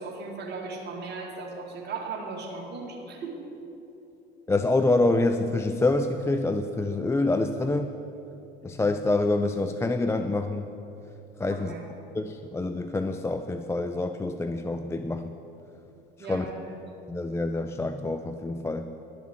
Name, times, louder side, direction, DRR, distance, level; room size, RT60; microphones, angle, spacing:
voice 1, 0.0-3.5 11.5-11.8 16.2-16.7, right 4 dB, 35° right, -2 dB, 2.2 m, -37 dB
voice 2, 4.5-7.9 8.6-10.7 11.4-11.7 12.1-15.3 16.3-16.5 17.1-18.9, left 2 dB, 10° left, 8 dB, 0.4 m, -26 dB
11.5 x 7.2 x 7.6 m, 2.9 s
hypercardioid pair, 70°, 30 cm